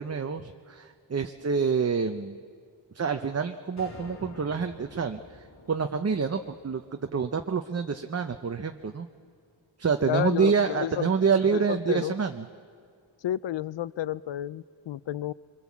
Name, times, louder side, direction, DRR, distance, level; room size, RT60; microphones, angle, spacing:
voice 1, 0.0-2.4 2.9-5.2 5.7-6.8 7.1-9.1 9.8-12.4, right 5 dB, 35° right, 6 dB, 0.7 m, -27 dB
sound 1, 3.8-8.2, left 3 dB, 35° left, 2.5 m, -50 dB
voice 2, 10.1-11.1 11.5-12.2 13.2-15.3, left 12 dB, 70° left, 19 dB, 0.6 m, -31 dB
25.0 x 22.5 x 7.3 m, 2.2 s
wide cardioid pair, 105°, 46 cm